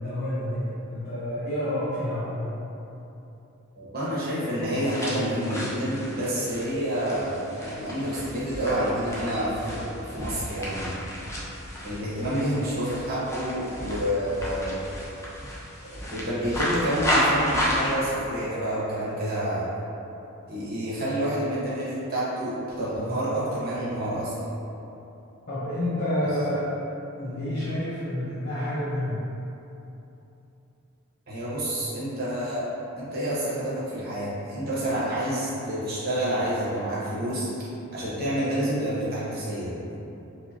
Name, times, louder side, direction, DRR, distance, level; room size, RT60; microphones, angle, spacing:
voice 1, 0.0-2.6 25.5-26.7 27.1-29.2, left 1 dB, 45° left, -12 dB, 0.8 m, -29 dB
voice 2, 3.7-11.0 11.8-14.7 16.0-19.7 20.5-24.5 31.3-32.6 33.0-37.5 37.9-39.7, equal, 45° right, -9 dB, 1.1 m, -28 dB
sound 1, 4.7-17.9, equal, 15° left, 0.5 m, -32 dB
4.6 x 2.8 x 2.8 m, 2.9 s
head